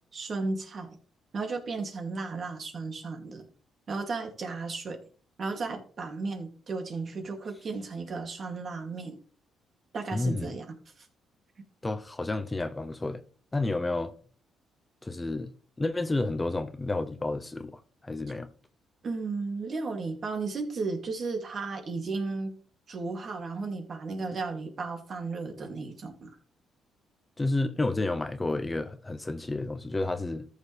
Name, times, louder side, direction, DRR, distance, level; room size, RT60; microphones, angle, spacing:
voice 1, 0.1-1.0 1.3-3.5 3.9-5.0 5.4-9.2 9.9-11.1 19.0-22.5 22.9-26.3, right 3 dB, 50° right, 2.6 m, -34 dB
voice 2, 10.1-10.5 11.8-13.2 13.5-14.1 15.0-15.5 15.8-18.5 27.4-30.5, left 2 dB, 20° left, 0.8 m, -30 dB
14.0 x 6.6 x 3.4 m
cardioid pair, 90°, 0 cm